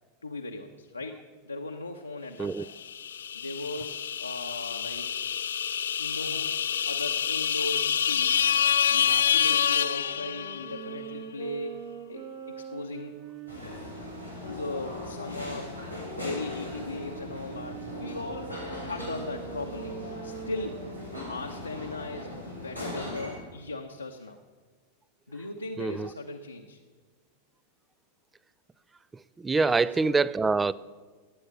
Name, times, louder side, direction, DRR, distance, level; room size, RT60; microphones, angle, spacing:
voice 1, 0.2-2.7 3.3-5.2 6.0-8.6 8.9-13.2 13.6-13.8 14.5-15.7 16.2-19.9 20.2-20.9 21.3-22.3 22.6-24.4 25.3-26.8 29.5-30.2, left 2 dB, 80° left, 2 dB, 0.9 m, -38 dB
sound 1, 2.8-10.8, left 8 dB, 65° left, 0.5 m, -27 dB
sound 2, 9.9-15.4 16.0-21.4, right 5 dB, 45° right, 1.9 m, -43 dB
sound 3, 13.5-23.4, left 1 dB, 90° right, 3.8 m, -39 dB
voice 2, 25.8-26.1 29.4-30.7, right 4 dB, 15° right, 20 dB, 0.4 m, -25 dB
18.5 x 9.0 x 7.0 m, 1.4 s
figure-of-eight pair, 90°, 0 cm